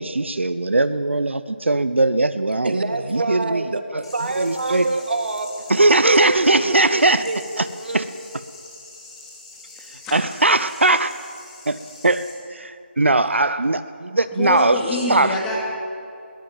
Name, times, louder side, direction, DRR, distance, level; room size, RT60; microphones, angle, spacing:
voice 1, 0.0-2.8 3.1-3.6 3.9-4.0 4.4-4.9 5.7-7.3 7.6-7.7 7.9-8.0 10.1-11.2 11.7-11.8 12.0-14.8 15.1-15.4, right 2 dB, 75° right, 13 dB, 0.9 m, -19 dB
voice 2, 2.6-5.7 6.0-6.6 6.9-7.4 7.8-8.1, right 2 dB, 60° right, 7 dB, 2.1 m, -26 dB
sound 1, 4.0-12.3, left 3 dB, 25° left, 5.0 m, -43 dB
voice 3, 14.3-15.6, left 2 dB, 10° left, -2 dB, 2.5 m, -25 dB
21.0 x 19.5 x 7.6 m, 2.5 s
figure-of-eight pair, 165°, 6 cm